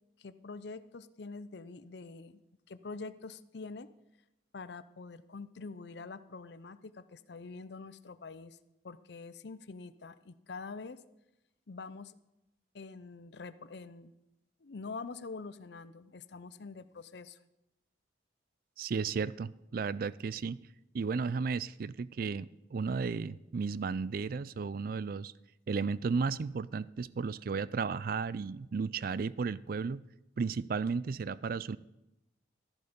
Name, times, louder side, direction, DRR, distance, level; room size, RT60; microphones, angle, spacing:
voice 1, 0.2-2.4 2.7-3.9 4.5-8.6 8.8-11.0 11.7-12.1 12.7-14.1 14.6-17.4, left 4 dB, 60° left, 14 dB, 0.6 m, -45 dB
voice 2, 18.8-20.6 20.9-25.3 25.7-30.0 30.4-31.8, right 5 dB, 50° right, 19 dB, 0.4 m, -34 dB
13.0 x 10.5 x 5.2 m, 0.93 s
head